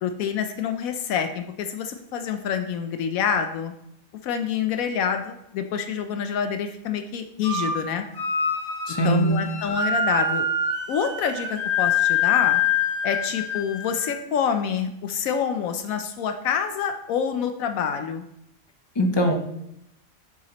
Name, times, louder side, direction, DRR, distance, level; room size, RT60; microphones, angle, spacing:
voice 1, 0.0-3.7 4.2-8.1 9.0-10.4 10.9-12.6 13.0-18.2, left 7 dB, 85° left, 6 dB, 1.0 m, -27 dB
sound 1, 7.4-7.8 8.1-14.2, left 5 dB, 40° left, 2.0 m, -25 dB
voice 2, 8.9-9.4 19.0-19.3, right 1 dB, 25° left, 3 dB, 0.6 m, -21 dB
7.5 x 7.1 x 2.9 m, 0.81 s
omnidirectional pair, 1.4 m